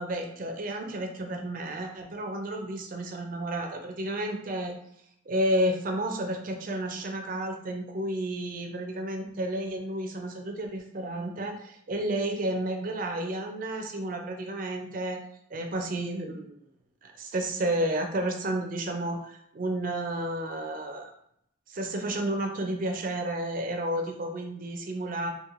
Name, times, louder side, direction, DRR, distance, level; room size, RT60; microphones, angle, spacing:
voice 1, 0.0-4.8 5.3-15.2 15.5-16.5 17.0-21.1 21.7-25.3, right 1 dB, 40° right, 3 dB, 0.4 m, -31 dB
3.0 x 2.5 x 2.4 m, 0.73 s
head